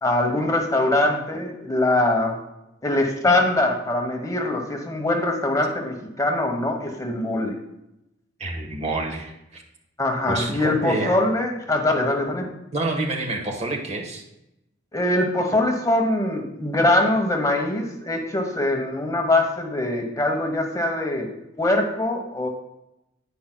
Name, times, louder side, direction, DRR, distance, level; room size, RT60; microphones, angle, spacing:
voice 1, 0.0-2.4 2.8-7.5 10.0-12.5 14.9-21.3 21.6-22.5, left 1 dB, 20° left, 2 dB, 1.0 m, -22 dB
voice 2, 8.4-9.6 10.3-11.2 12.7-14.2, right 2 dB, 35° right, 2 dB, 1.2 m, -28 dB
10.0 x 9.3 x 2.2 m, 0.87 s
head